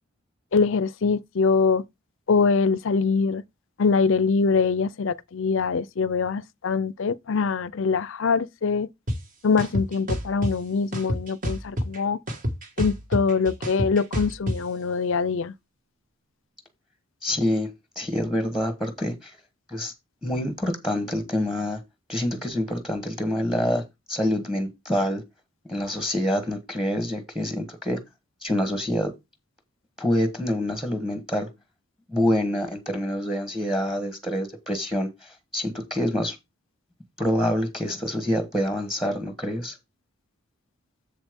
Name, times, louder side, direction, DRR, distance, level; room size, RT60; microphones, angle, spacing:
voice 1, 0.5-1.8 2.3-3.4 3.8-8.9 9.4-12.2 12.8-15.5, left 5 dB, 65° left, 0.5 m, -23 dB
sound 1, 9.1-9.2 9.6-10.5 10.9-12.0 12.3-14.6, equal, 40° right, 1.6 m, -27 dB
voice 2, 17.2-17.7 18.0-19.4 19.7-19.9 20.2-21.8 22.1-25.2 25.7-28.0 28.4-29.1 30.0-31.5 32.1-36.4 37.2-39.8, left 1 dB, ahead, 1.2 m, -26 dB
7.5 x 7.2 x 3.6 m
head